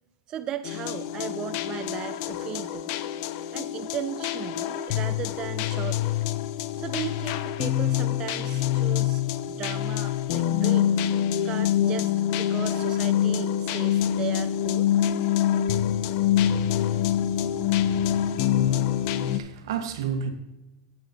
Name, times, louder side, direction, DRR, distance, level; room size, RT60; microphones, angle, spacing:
voice 1, 0.3-2.9 3.5-6.1 6.8-14.9, right 10 dB, 35° right, 0.4 m, -37 dB
sound 1, 0.6-19.4, left 10 dB, 60° left, 0.5 m, -25 dB
voice 2, 17.7-18.2 18.7-20.3, right 7 dB, 80° right, 1.4 m, -33 dB
9.4 x 8.7 x 2.8 m
hypercardioid pair, 115°, 2 cm